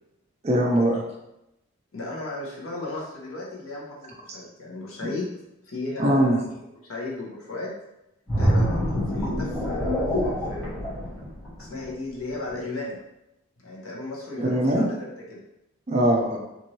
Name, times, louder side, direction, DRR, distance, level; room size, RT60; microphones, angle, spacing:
voice 1, 0.4-1.0 6.0-6.4 14.4-14.9 15.9-16.4, right 1 dB, 30° right, -1 dB, 0.4 m, -21 dB
voice 2, 1.9-5.3 5.6-6.4 6.8-7.7 8.3-10.7 11.6-13.0 13.6-15.4, left 2 dB, 80° left, -3 dB, 0.8 m, -35 dB
sound 1, 8.3-11.9 12.3-12.5, equal, ahead, 1.1 m, -25 dB
3.0 x 2.5 x 2.7 m, 0.90 s
head